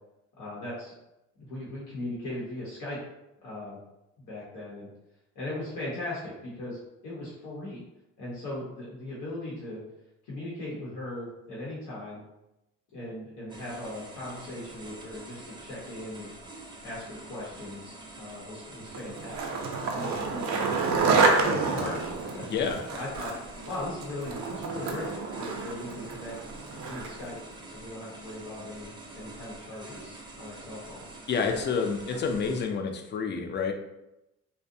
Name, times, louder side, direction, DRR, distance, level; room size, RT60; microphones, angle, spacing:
voice 1, 0.4-0.9 1.4-3.0 3.4-3.8 4.2-4.9 5.3-7.8 8.2-9.8 10.2-12.2 12.9-16.3 16.8-19.6 19.8-21.1 21.4-22.5 22.9-23.3 23.7-26.3 26.9-27.4 27.7-31.1 31.5-31.6, left 1 dB, 85° left, -7 dB, 0.9 m, -38 dB
sound 1, 13.5-32.7, right 2 dB, 15° right, 0.6 m, -46 dB
Skateboard, 18.9-27.3, right 4 dB, 65° right, 0.5 m, -29 dB
voice 2, 22.5-22.8 31.3-33.7, left 5 dB, 35° left, 4 dB, 0.4 m, -28 dB
2.5 x 2.1 x 2.6 m, 0.92 s
cardioid pair, 85°, 30 cm